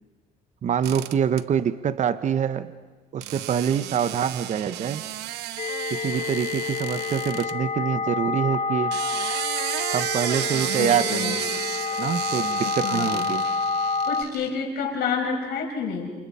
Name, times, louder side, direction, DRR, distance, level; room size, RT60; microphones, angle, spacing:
voice 1, 0.6-2.7 3.1-5.0 5.9-8.9 9.9-11.4 12.0-13.4, right 8 dB, 45° right, 13 dB, 1.0 m, -25 dB
sound 1, 0.8-1.4 3.2-7.5 8.7-14.5, right 14 dB, 85° right, 1.0 m, -32 dB
sound 2, 5.6-14.2, left 5 dB, 40° left, 1.0 m, -28 dB
voice 2, 10.8-11.3 12.6-13.3 14.1-16.1, left 6 dB, 70° left, 0 dB, 6.4 m, -29 dB
29.5 x 28.0 x 5.6 m, 1.3 s
cardioid pair, 110°, 17 cm